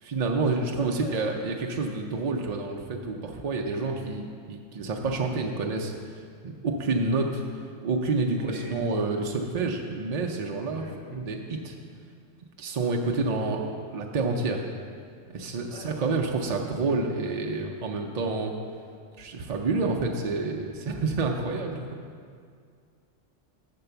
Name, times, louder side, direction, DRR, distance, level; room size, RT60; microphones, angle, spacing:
voice 1, 0.0-5.9 6.4-10.8 11.1-11.7 12.6-14.6 15.3-18.5 19.2-21.8, right 3 dB, 65° right, 1 dB, 0.4 m, -28 dB
voice 2, 0.5-1.3 3.8-4.1 8.3-9.4 10.7-11.2 15.5-16.2, left 3 dB, 40° left, -3 dB, 0.5 m, -43 dB
6.7 x 4.6 x 6.8 m, 2.2 s
omnidirectional pair, 1.3 m